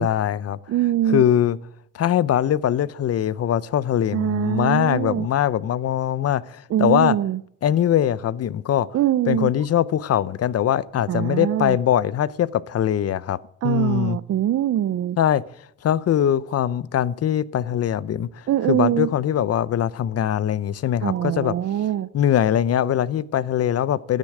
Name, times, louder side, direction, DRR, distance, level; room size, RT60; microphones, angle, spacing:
voice 1, 0.0-0.6 1.1-1.6 1.9-7.2 7.6-8.9 9.3-13.4 13.6-14.2 15.2-15.4 15.8-21.5 22.1-24.2, left 10 dB, 55° left, 0.7 m, -22 dB
voice 2, 0.7-1.2 4.1-5.3 6.7-7.4 8.9-9.5 11.1-11.8 13.6-15.2 18.5-19.1 21.0-22.1, right 12 dB, 55° right, 0.6 m, -23 dB
12.0 x 9.9 x 4.9 m
cardioid pair, 90°, 30 cm